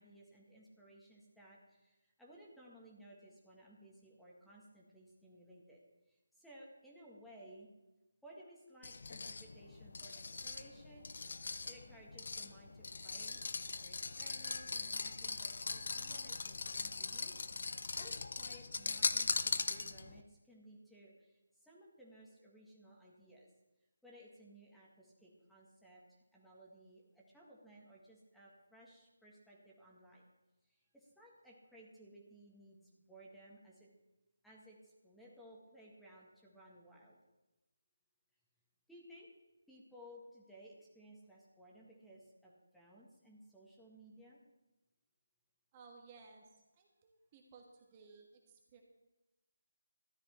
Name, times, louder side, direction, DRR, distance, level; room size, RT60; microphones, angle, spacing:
voice 1, 0.0-5.8 6.1-7.7 8.2-11.1 11.4-13.4 13.8-23.5 24.0-30.2 30.6-33.9 34.4-37.2 38.9-39.3 39.7-44.4, right 1 dB, ahead, -5 dB, 1.7 m, -59 dB
sound 1, 8.8-20.2, left 4 dB, 55° left, 0.8 m, -40 dB
voice 2, 45.7-46.4 46.8-48.8, right 4 dB, 25° right, 1 dB, 1.6 m, -59 dB
13.5 x 10.5 x 4.4 m, 1.0 s
figure-of-eight pair, 160°, 0 cm